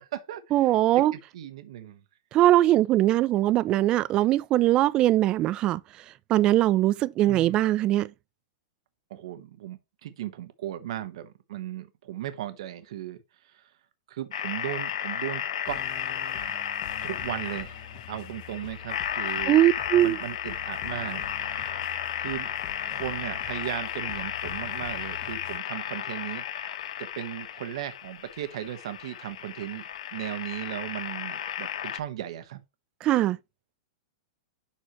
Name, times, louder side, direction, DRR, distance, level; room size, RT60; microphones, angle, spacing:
voice 1, 0.0-2.0 7.3-7.7 9.1-13.7 14.1-15.8 17.0-19.6 20.0-21.3 22.2-22.5 22.9-29.8 30.1-32.6, right 12 dB, 65° right, 1.2 m, -37 dB
voice 2, 0.5-1.1 2.3-5.8 6.3-8.1 19.5-20.2 33.0-33.4, right 14 dB, 25° right, 0.4 m, -21 dB
sound 1, 14.3-32.0, left 9 dB, 80° left, 1.1 m, -34 dB
sound 2, 15.6-25.6, left 10 dB, 35° left, 1.0 m, -46 dB
11.0 x 4.5 x 3.1 m
supercardioid pair, 155°, 3 cm